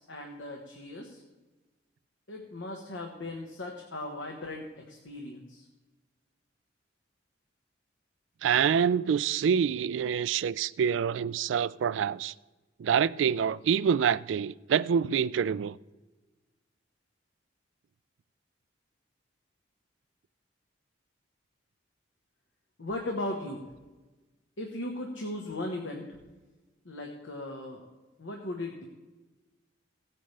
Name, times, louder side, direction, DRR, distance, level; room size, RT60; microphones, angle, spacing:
voice 1, 0.1-1.2 2.3-5.7 22.8-23.7 24.6-26.2 26.8-27.9 28.2-28.8, left 1 dB, 80° left, 1.3 m, -37 dB
voice 2, 8.4-12.3 12.8-15.8, right 7 dB, 75° right, 0.3 m, -26 dB
16.5 x 8.9 x 3.3 m
head